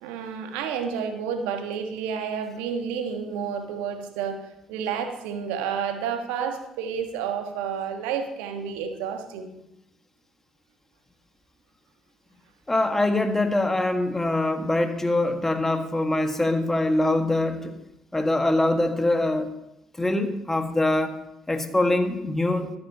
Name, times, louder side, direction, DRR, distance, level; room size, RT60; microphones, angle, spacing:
voice 1, 0.0-4.4 4.7-9.5, right 7 dB, 75° right, 6 dB, 1.4 m, -30 dB
voice 2, 12.7-17.8 18.1-19.5 20.0-21.1 21.5-22.7, left 2 dB, 15° left, 6 dB, 1.5 m, -23 dB
23.5 x 8.6 x 2.9 m, 0.85 s
figure-of-eight pair, 45°, 2 cm